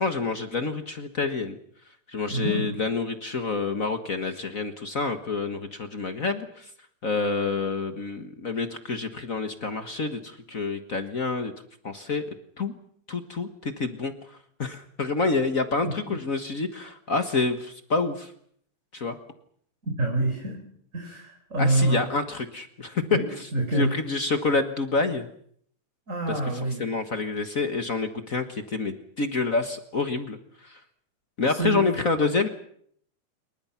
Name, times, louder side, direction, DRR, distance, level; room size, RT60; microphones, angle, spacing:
voice 1, 0.0-1.6 2.1-6.7 7.0-11.5 11.8-12.2 12.6-12.7 13.1-18.3 18.9-19.2 21.6-25.3 26.3-26.4 26.8-30.8 31.4-32.5, left 3 dB, 50° left, 8 dB, 1.0 m, -28 dB
voice 2, 2.3-2.7 4.2-4.3 16.1-16.2 19.8-20.6 20.9-22.0 23.1-23.2 23.5-23.9 26.1-26.9 30.7-30.8 31.5-31.8, right 2 dB, 20° right, 1 dB, 4.5 m, -26 dB
28.0 x 23.5 x 5.9 m, 0.64 s
omnidirectional pair, 3.8 m